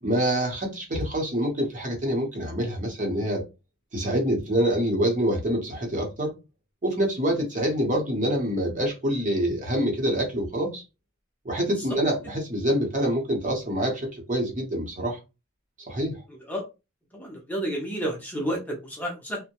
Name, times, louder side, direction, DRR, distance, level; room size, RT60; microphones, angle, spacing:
voice 1, 0.0-3.4 3.9-6.3 6.8-10.8 11.4-15.2 15.8-16.2, equal, 40° right, 0.9 m, -26 dB
voice 2, 17.1-19.4, equal, 10° left, 0.6 m, -30 dB
2.7 x 2.0 x 2.9 m
head